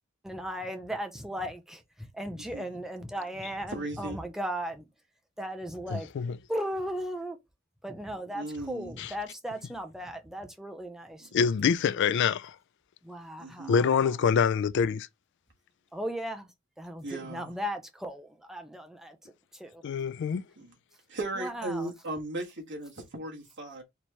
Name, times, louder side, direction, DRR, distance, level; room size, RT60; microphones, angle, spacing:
voice 1, 0.2-4.9 5.4-6.1 6.5-7.4 7.8-11.3 13.0-14.1 15.9-16.5 16.8-19.8 21.4-21.9, equal, ahead, 0.6 m, -37 dB
voice 2, 3.7-4.3 8.3-8.9 11.2-11.3 13.4-13.8 17.0-17.5 20.6-20.7 21.1-23.8, right 2 dB, 55° right, 1.5 m, -37 dB
voice 3, 5.9-6.4 9.0-9.1 11.3-12.6 13.7-15.1 19.8-20.4, left 6 dB, 55° left, 0.3 m, -25 dB
4.4 x 2.9 x 3.2 m
head